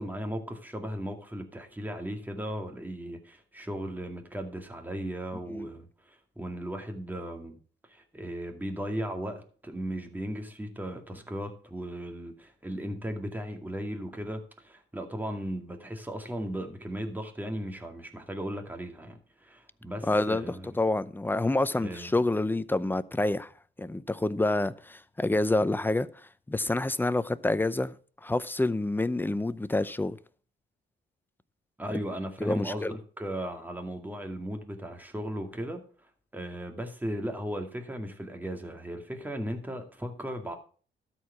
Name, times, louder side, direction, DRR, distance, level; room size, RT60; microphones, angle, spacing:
voice 1, 0.0-7.6 7.9-20.8 21.8-22.1 31.8-35.8 36.3-40.6, equal, 10° right, 2.1 m, -36 dB
voice 2, 20.0-23.5 23.8-26.1 26.5-27.9 28.2-30.2 32.4-33.0, left 2 dB, 10° left, 0.6 m, -28 dB
12.5 x 4.8 x 7.1 m
cardioid pair, 90°, 20 cm